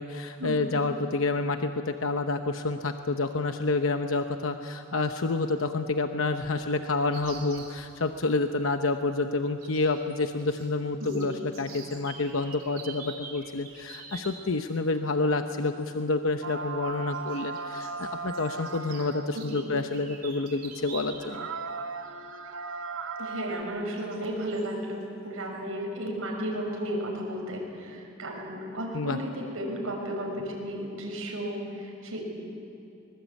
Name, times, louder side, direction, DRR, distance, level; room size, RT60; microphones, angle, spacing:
voice 1, 0.0-21.5 28.9-29.2, left 3 dB, 75° left, 7 dB, 0.9 m, -28 dB
sound 1, 7.1-7.7 9.6-10.7 10.9-14.4 15.8-15.9 17.1-21.4 21.7-21.8 23.3-23.4 24.0-24.2 24.5-24.7, right 6 dB, 45° right, 4.0 m, -46 dB
sound 2, 16.4-19.4 20.4-20.5 20.9-21.0 21.2-23.6, right 4 dB, 65° right, 1.0 m, -37 dB
voice 2, 23.2-32.3, equal, 80° right, 0 dB, 6.0 m, -34 dB
24.5 x 21.5 x 8.4 m, 2.8 s
head